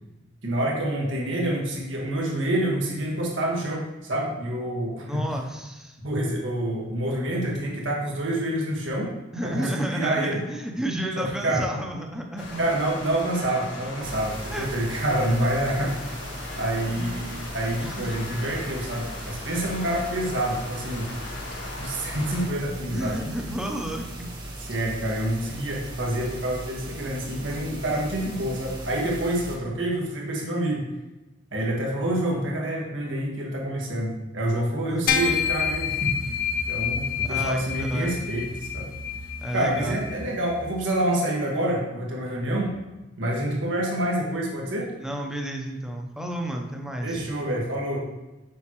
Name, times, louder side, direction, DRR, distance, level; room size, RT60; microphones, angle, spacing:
voice 1, 0.4-5.2 6.0-9.1 9.4-10.4 11.1-11.7 12.6-15.9 16.5-21.1 21.8-23.2 24.6-30.9 31.5-36.4 36.7-38.9 39.5-42.7 43.2-44.9 47.0-48.0, right 1 dB, 85° right, -3 dB, 1.7 m, -27 dB
voice 2, 5.1-6.0 9.3-12.6 14.5-14.7 16.9-17.1 17.8-18.1 22.9-24.3 34.9-35.1 37.2-38.2 39.4-40.0 45.0-47.3, right 1 dB, 5° right, 1 dB, 0.8 m, -31 dB
sound 1, 12.4-22.5, left 2 dB, 90° left, 1.3 m, -39 dB
sound 2, 14.0-29.6, right 1 dB, 25° right, 1.3 m, -38 dB
sound 3, 35.1-40.7, left 7 dB, 50° left, 1.0 m, -28 dB
7.3 x 5.7 x 3.1 m, 1.1 s
head